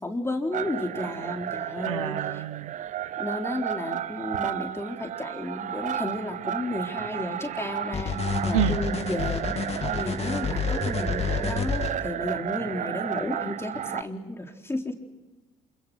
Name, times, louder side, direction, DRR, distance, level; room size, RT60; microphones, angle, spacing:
voice 1, 0.0-2.4 3.2-9.5 9.8-14.9, left 1 dB, 15° left, 3 dB, 3.8 m, -33 dB
sound 1, 0.5-14.0, right 10 dB, 50° right, 0.9 m, -33 dB
voice 2, 1.8-2.7 8.5-8.8, right 12 dB, 80° right, 16 dB, 1.0 m, -28 dB
sound 2, 7.9-11.9, left 6 dB, 40° left, 2.9 m, -28 dB
28.0 x 27.0 x 6.3 m, 1.1 s
hypercardioid pair, 55°, 16 cm